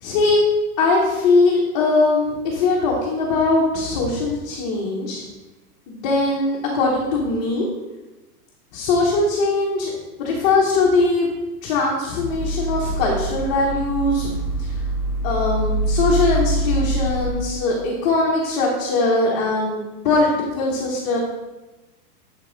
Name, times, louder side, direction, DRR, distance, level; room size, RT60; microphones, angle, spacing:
voice 1, 0.0-0.4 0.8-5.2 5.9-7.7 8.7-9.9 10.2-11.3 11.6-14.3 14.6-14.7 15.2-21.2, left 3 dB, 25° left, -3 dB, 0.9 m, -20 dB
sound 1, 12.3-17.3, right 2 dB, 15° right, 0.7 m, -24 dB
7.4 x 5.2 x 3.8 m, 1.1 s
supercardioid pair, 170°, 46 cm